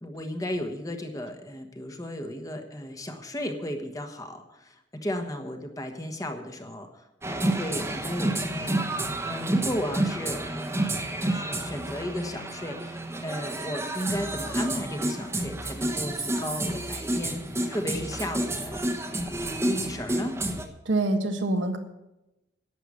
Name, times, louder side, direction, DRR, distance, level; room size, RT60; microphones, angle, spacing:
voice 1, 0.0-8.8 9.2-10.8 11.2-18.8 19.2-20.4, left 1 dB, 20° left, 5 dB, 1.2 m, -35 dB
sound 1, 7.2-20.7, right 1 dB, 15° right, 1.0 m, -30 dB
voice 2, 20.8-21.8, right 2 dB, 90° right, 5 dB, 1.6 m, -25 dB
11.5 x 7.9 x 8.4 m, 0.93 s
head